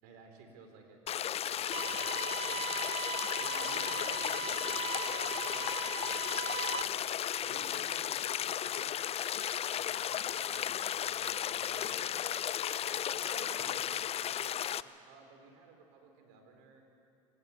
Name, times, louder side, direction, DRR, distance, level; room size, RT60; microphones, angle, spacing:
voice 1, 0.0-2.7 3.1-7.0 7.4-9.0 9.6-16.8, right 4 dB, 65° right, 4 dB, 4.0 m, -56 dB
sound 1, 1.1-14.8, left 10 dB, 35° left, 0.6 m, -34 dB
sound 2, 1.7-6.8, right 8 dB, 35° right, 0.7 m, -39 dB
24.5 x 19.5 x 7.2 m, 2.8 s
hypercardioid pair, 75°, 17 cm